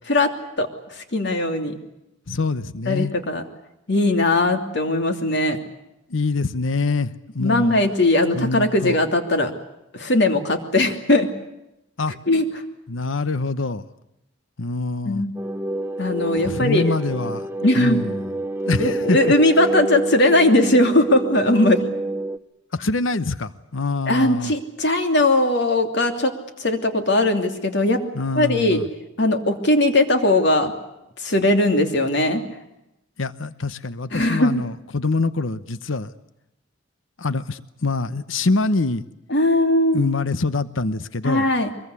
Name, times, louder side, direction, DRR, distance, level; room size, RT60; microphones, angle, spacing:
voice 1, 1.0-1.8 2.9-3.4 3.9-5.6 7.4-9.5 9.9-11.3 12.3-12.4 15.0-15.3 16.0-17.0 17.6-18.1 18.8-21.8 24.1-26.3 26.6-28.0 28.4-28.8 29.2-30.7 31.2-32.4 34.1-34.5 39.3-40.1 41.2-41.7, left 1 dB, 60° left, 6 dB, 2.9 m, -19 dB
voice 2, 2.3-3.1 6.1-7.8 8.3-9.0 12.0-12.2 12.9-13.9 14.6-15.2 16.4-17.5 17.8-18.3 18.6-19.3 22.8-24.5 28.1-28.8 33.2-36.1 37.2-39.0 39.9-41.4, left 3 dB, 80° left, 14 dB, 1.0 m, -25 dB
sound 1, 15.4-22.4, right 2 dB, 10° right, 0.9 m, -28 dB
24.0 x 22.5 x 8.3 m, 0.89 s
head